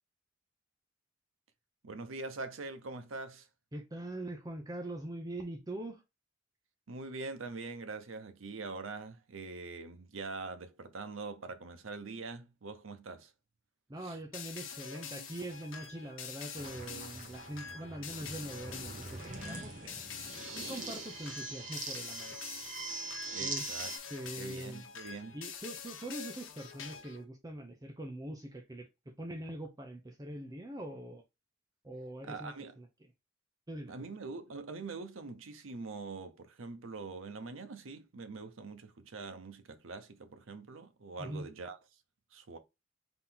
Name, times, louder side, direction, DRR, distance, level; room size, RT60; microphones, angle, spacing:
voice 1, 1.8-3.5 6.9-13.3 14.0-14.2 23.3-23.9 24.4-25.4 32.2-32.7 33.9-41.8 42.3-42.6, right 3 dB, 90° right, 0.7 m, -43 dB
voice 2, 3.7-6.0 13.9-20.1 20.5-22.4 23.4-23.7 24.1-24.9 25.3-31.2 31.8-32.9 33.7-34.1 41.2-41.5, right 1 dB, 20° right, 0.6 m, -43 dB
sound 1, 14.3-27.2, left 7 dB, 80° left, 0.9 m, -46 dB
sound 2, 16.5-24.0, right 3 dB, 40° right, 1.1 m, -43 dB
3.8 x 2.9 x 3.8 m
head